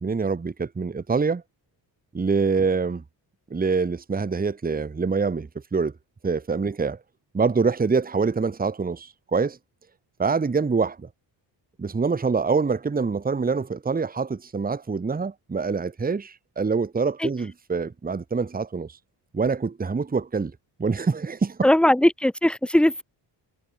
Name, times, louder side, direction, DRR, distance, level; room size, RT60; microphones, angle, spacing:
voice 1, 0.0-1.4 2.1-3.0 3.5-5.9 6.2-7.0 7.3-9.6 10.2-11.1 11.8-19.0 19.3-20.5 20.8-21.7, right 4 dB, 20° right, 1.2 m, -25 dB
voice 2, 21.6-23.0, left 1 dB, ahead, 1.1 m, -19 dB
cardioid pair, 110°, 45 cm